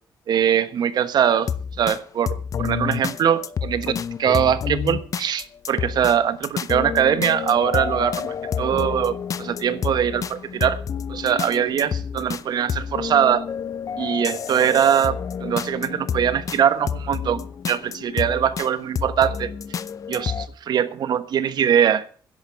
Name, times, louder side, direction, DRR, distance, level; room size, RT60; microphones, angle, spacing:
voice 1, 0.3-1.5 1.8-10.8 11.1-13.5 14.0-19.5 20.1-20.3 20.7-22.0, right 9 dB, 60° right, 13 dB, 1.3 m, -22 dB
sound 1, 1.4-2.0 2.3-6.2 6.4-20.5, left 7 dB, 45° left, 0.7 m, -29 dB
10.5 x 8.3 x 8.5 m, 0.43 s
cardioid pair, 110°, 8 cm